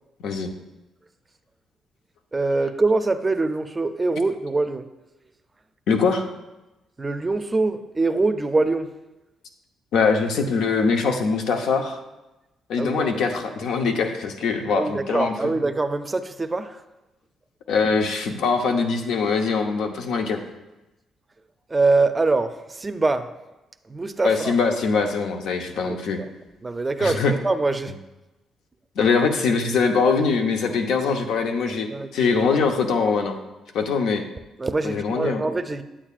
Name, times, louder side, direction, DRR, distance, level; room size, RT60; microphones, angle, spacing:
voice 1, 2.3-4.8 7.0-8.9 12.8-13.1 14.7-16.8 21.7-23.3 23.9-24.5 25.9-26.3 26.6-27.9 31.9-32.3 34.6-35.8, right 3 dB, 20° right, 8 dB, 0.5 m, -24 dB
voice 2, 5.9-6.3 9.9-12.0 12.7-15.5 17.7-20.4 24.2-26.2 27.0-27.3 29.0-31.9 32.1-33.4 33.7-34.2 34.8-35.4, left 5 dB, 80° left, 5 dB, 0.8 m, -22 dB
8.8 x 8.6 x 2.5 m, 1.0 s
cardioid pair, 90°, 0 cm